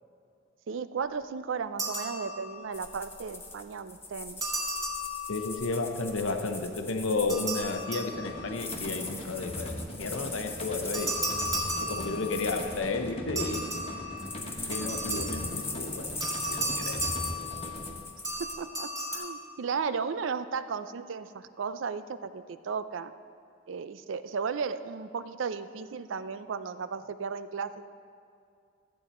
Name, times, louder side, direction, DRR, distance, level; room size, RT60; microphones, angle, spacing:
voice 1, 0.7-4.4 12.3-12.5 18.6-23.1 23.7-27.9, right 5 dB, 70° right, 12 dB, 0.4 m, -35 dB
sound 1, 1.8-2.7 4.4-5.7 7.3-8.7 10.9-12.6 13.4-15.6 16.2-17.9 18.2-19.2, right 1 dB, 20° right, 2.1 m, -34 dB
sound 2, 2.7-7.8 8.5-13.1 13.7-18.5, left 3 dB, 10° left, 0.9 m, -40 dB
voice 2, 5.3-11.2 11.8-13.7 14.6-16.1 16.5-17.0, left 3 dB, 85° left, 6 dB, 0.8 m, -32 dB
sound 3, 8.1-17.9, equal, 30° left, 1.2 m, -40 dB
13.5 x 8.3 x 4.3 m, 2.5 s
head